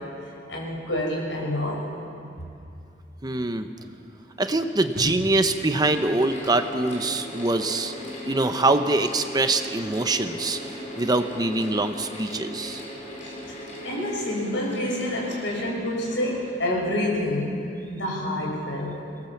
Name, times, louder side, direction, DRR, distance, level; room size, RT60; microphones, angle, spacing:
voice 1, 0.0-1.9 13.2-17.6 17.9-19.1, left 1 dB, 85° left, -2 dB, 5.9 m, -28 dB
voice 2, 3.2-3.7 4.4-7.9 8.3-10.6 11.0-12.8, right 2 dB, 20° right, 7 dB, 0.8 m, -24 dB
Mechanical fan, 3.6-3.7 4.5-17.2, left 1 dB, 40° left, 4.4 m, -39 dB
sound 1, 3.8-4.0 4.5-4.7 4.9-5.4 5.7-6.1 6.4-6.9 7.2-7.6 8.0-8.3 8.7-8.9, equal, 60° right, 3.3 m, -38 dB
23.5 x 19.0 x 7.3 m, 2.6 s
head